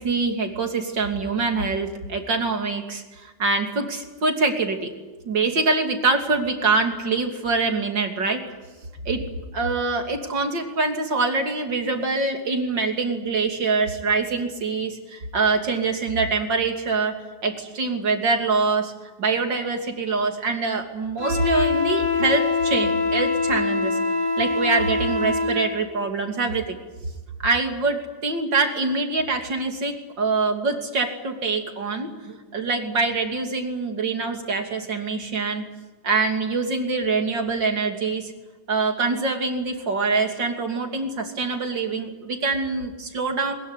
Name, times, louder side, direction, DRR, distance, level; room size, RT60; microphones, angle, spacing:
voice 1, 0.0-4.9 5.3-8.4 9.1-9.2 9.5-17.2 17.4-18.9 19.2-24.0 24.4-26.6 27.4-35.6 36.0-38.3 38.7-43.5, right 3 dB, 70° right, 4 dB, 3.5 m, -24 dB
Wind instrument woodwind instrument, 21.2-25.7, left 3 dB, 40° left, 8.3 m, -24 dB
22.0 x 21.5 x 9.8 m, 1.2 s
omnidirectional pair, 2.1 m